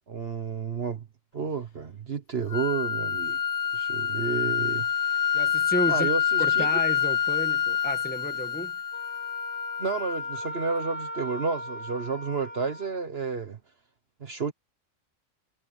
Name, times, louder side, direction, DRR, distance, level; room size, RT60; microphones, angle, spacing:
voice 1, 0.1-1.1 1.3-3.4 3.7-4.9 5.9-6.7 9.8-13.6 14.2-14.5, right 5 dB, 50° right, 1.4 m, -31 dB
sound 1, 2.5-10.5, left 8 dB, 40° left, 1.0 m, -27 dB
voice 2, 5.3-6.1 6.4-8.7, equal, 5° left, 1.8 m, -32 dB
Wind instrument woodwind instrument, 8.9-13.1, equal, 25° right, 6.4 m, -39 dB
omnidirectional pair, 1.4 m